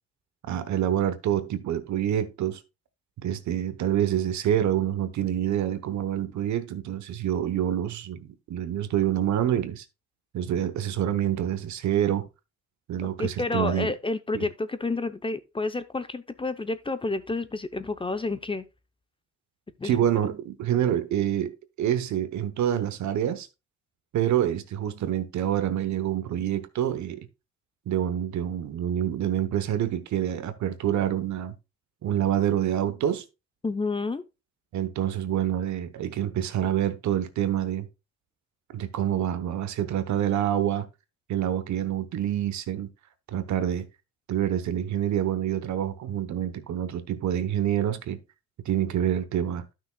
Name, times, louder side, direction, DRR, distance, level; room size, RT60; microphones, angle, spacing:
voice 1, 0.5-2.6 3.2-9.8 10.3-12.3 12.9-13.9 14.3-14.4 19.8-23.5 24.1-27.3 27.9-31.5 32.0-33.2 34.7-37.9 38.7-40.9 41.3-42.9 43.3-43.8 44.3-48.2 48.6-49.6, right 10 dB, 70° right, 1.0 m, -27 dB
voice 2, 13.0-18.7 19.8-20.0 33.6-34.2, left 3 dB, 15° left, 0.6 m, -30 dB
12.0 x 6.1 x 2.2 m
cardioid pair, 90°, 30 cm